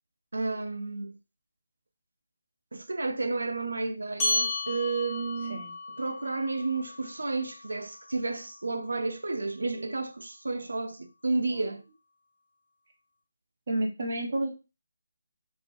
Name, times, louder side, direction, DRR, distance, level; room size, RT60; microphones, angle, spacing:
voice 1, 0.3-1.1 2.7-5.7 6.0-11.8, right 3 dB, 85° right, 0.7 m, -31 dB
sound 1, 4.2-9.0, left 2 dB, 15° left, 1.1 m, -34 dB
voice 2, 13.7-14.5, right 1 dB, 50° right, 1.5 m, -31 dB
3.6 x 2.5 x 4.4 m
figure-of-eight pair, 165°, 0 cm